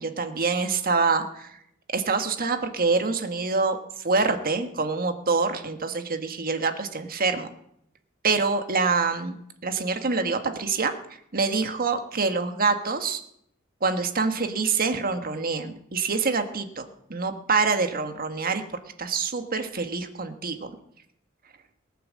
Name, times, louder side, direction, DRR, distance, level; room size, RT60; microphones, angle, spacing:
voice 1, 0.0-1.6 1.9-7.5 8.2-9.4 9.6-10.9 11.3-13.2 13.8-16.8 17.1-18.6 19.0-20.7, right 4 dB, 45° right, 7 dB, 1.6 m, -26 dB
19.0 x 9.1 x 7.6 m, 0.73 s
head